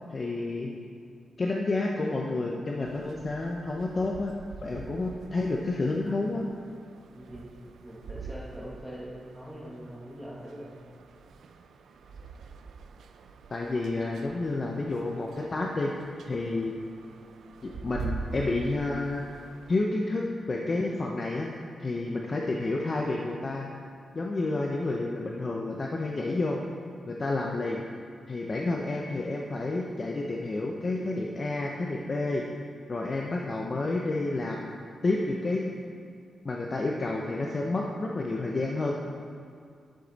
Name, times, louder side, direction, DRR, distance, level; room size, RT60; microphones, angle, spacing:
voice 1, 0.1-0.7 1.4-4.3 4.6-6.5 13.5-16.8 17.6-19.3 19.7-21.5 21.8-23.7 24.1-26.6 27.1-27.8 28.3-32.5 32.9-34.8 35.0-35.7 36.4-38.9, left 2 dB, 30° left, 0 dB, 0.6 m, -30 dB
sound 1, 2.9-19.8, right 4 dB, 75° right, 0.4 m, -45 dB
voice 2, 7.1-7.5 7.8-10.8, equal, 5° right, -4 dB, 1.2 m, -42 dB
10.0 x 7.9 x 4.0 m, 2.3 s
wide cardioid pair, 165°, 0 cm